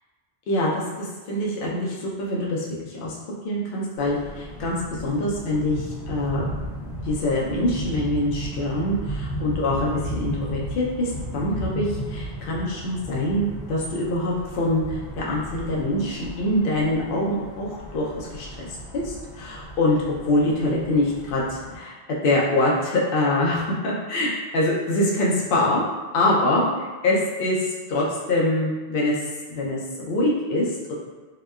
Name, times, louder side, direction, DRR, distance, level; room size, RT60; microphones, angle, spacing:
voice 1, 0.5-3.2 3.4-6.5 7.0-20.0 20.3-21.9 22.2-25.8 26.1-30.9, left 1 dB, 60° left, -4 dB, 0.7 m, -24 dB
sound 1, 4.0-21.8, right 1 dB, 80° left, 1.1 m, -35 dB
2.8 x 2.2 x 2.3 m, 1.3 s
omnidirectional pair, 1.1 m